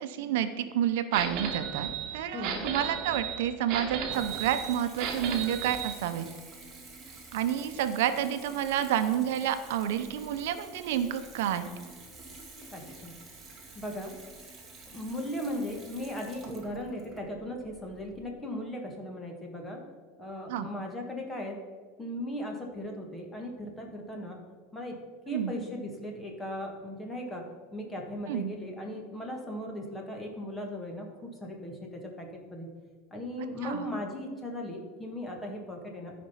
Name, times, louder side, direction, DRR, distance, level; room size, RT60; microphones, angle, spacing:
voice 1, 0.0-6.2 7.3-11.7 20.5-20.7 25.3-25.6 28.3-28.5 33.6-33.9, right 10 dB, 75° right, 9 dB, 0.8 m, -29 dB
sound 1, 1.1-5.9, right 7 dB, 45° right, 1.5 m, -34 dB
voice 2, 2.3-2.7 12.7-13.2 13.8-14.1 14.9-19.8 20.2-21.6 22.0-24.4 24.7-25.0 25.3-27.4 27.7-32.7 33.1-36.1, left 1 dB, 10° left, 2 dB, 1.8 m, -37 dB
Water tap faucet / Bathtub (filling or washing) / Trickle dribble, 3.5-18.3, right 3 dB, 15° right, 1.9 m, -49 dB
13.5 x 5.2 x 5.7 m, 1.5 s
supercardioid pair, 145°, 0 cm